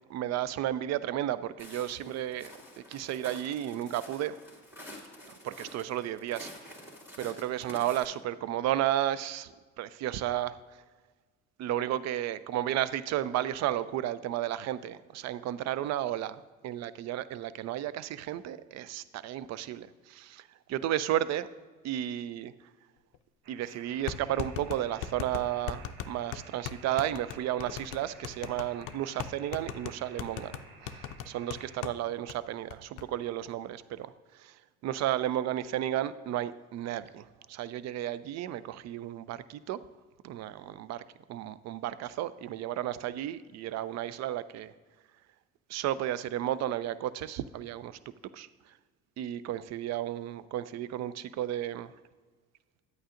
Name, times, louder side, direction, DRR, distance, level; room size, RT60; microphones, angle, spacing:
voice 1, 0.1-2.5 2.9-4.3 5.3-6.5 7.2-10.8 11.6-21.5 21.8-22.5 23.5-30.5 30.9-34.6 34.8-39.8 40.2-41.0 41.3-44.7 45.7-48.0 48.3-48.5 49.2-51.9, right 12 dB, 45° right, 16 dB, 0.5 m, -33 dB
Walk footsteps, 1.6-8.0, left 1 dB, 5° right, 2.3 m, -49 dB
sound 1, 23.1-23.2 24.1-32.0 32.3-32.4 32.7-33.1, left 10 dB, 60° left, 0.5 m, -39 dB
sound 2, 23.4-31.8, right 4 dB, 70° right, 1.0 m, -53 dB
9.3 x 8.7 x 2.5 m, 1.4 s
hypercardioid pair, 70°, 37 cm